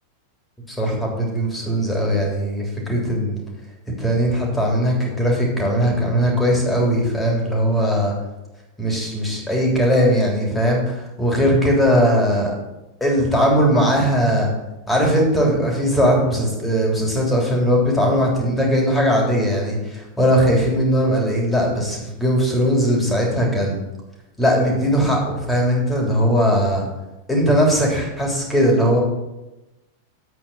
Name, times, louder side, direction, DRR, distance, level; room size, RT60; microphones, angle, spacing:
voice 1, 0.7-3.4 4.0-8.1 8.8-12.5 13.0-14.5 14.9-23.8 24.4-26.8 27.3-29.0, equal, 10° left, -1 dB, 3.3 m, -19 dB
9.7 x 8.4 x 5.6 m, 1.0 s
figure-of-eight pair, 90°, 0 cm